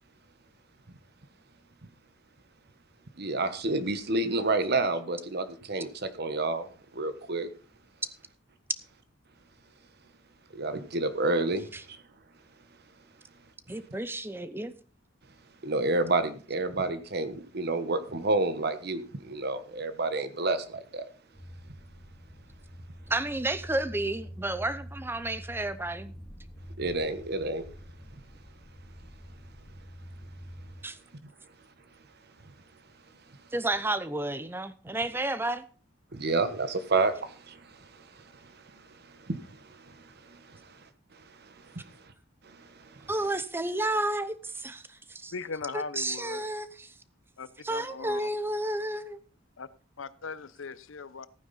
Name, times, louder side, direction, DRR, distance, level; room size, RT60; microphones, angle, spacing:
voice 1, 3.2-6.7 6.9-7.5 10.5-12.0 15.6-21.0 26.8-27.7 36.1-38.2 38.6-40.7 41.4-41.9 42.4-43.1, right 2 dB, 55° right, 1.2 m, -30 dB
voice 2, 13.7-14.7 23.1-26.1 30.8-31.0 33.5-35.6 43.1-45.3 45.7-46.9 47.6-49.2, right 1 dB, 10° right, 0.8 m, -31 dB
sound 1, 21.3-30.8, equal, 20° left, 2.6 m, -46 dB
voice 3, 45.3-46.4 47.4-48.3 49.6-49.7 50.0-51.3, left 4 dB, 90° left, 0.8 m, -39 dB
14.5 x 9.4 x 4.2 m
head